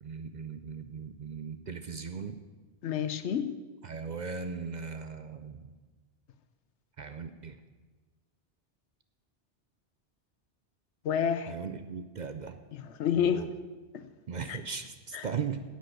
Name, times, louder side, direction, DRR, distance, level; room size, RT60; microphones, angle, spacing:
voice 1, 0.0-2.4 3.8-5.7 7.0-7.6 11.5-12.6 13.2-13.5 14.3-15.6, right 6 dB, 50° right, 9 dB, 0.6 m, -38 dB
voice 2, 2.8-3.5 11.0-11.5 12.7-13.4 13.9-14.0 14.5-14.6 15.1-15.3, left 8 dB, 80° left, 12 dB, 1.0 m, -29 dB
10.0 x 8.4 x 7.7 m, 1.3 s
omnidirectional pair, 1.2 m